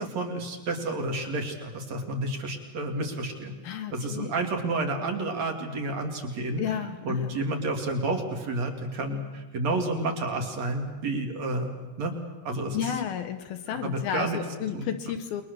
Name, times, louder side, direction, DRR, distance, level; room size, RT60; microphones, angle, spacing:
voice 1, 0.0-3.6 3.9-6.6 7.0-11.7 12.0-12.1 12.4-12.8 13.7-14.4 14.7-14.9, right 2 dB, 45° right, 4 dB, 3.1 m, -30 dB
voice 2, 3.6-4.3 6.6-7.4 12.7-15.4, left 9 dB, 70° left, 7 dB, 2.5 m, -32 dB
28.5 x 22.5 x 6.8 m, 1.2 s
omnidirectional pair, 5.0 m